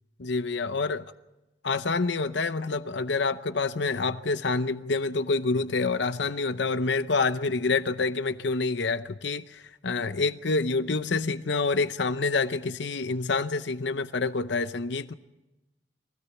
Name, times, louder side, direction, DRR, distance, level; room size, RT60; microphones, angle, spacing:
voice 1, 0.2-1.0 1.6-15.1, left 3 dB, 65° left, 0.7 m, -27 dB
23.5 x 16.5 x 7.1 m
head